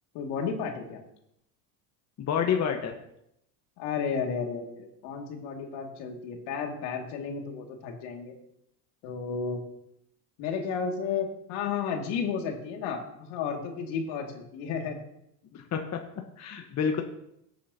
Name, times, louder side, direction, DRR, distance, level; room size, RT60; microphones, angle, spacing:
voice 1, 0.1-1.0 3.8-8.3 9.0-9.6 10.4-15.0, left 6 dB, 70° left, 2 dB, 2.3 m, -33 dB
voice 2, 2.2-2.9 15.5-15.8 16.4-17.0, left 7 dB, 35° left, 3 dB, 1.2 m, -28 dB
16.5 x 8.4 x 2.8 m, 0.77 s
supercardioid pair, 100°, 45 cm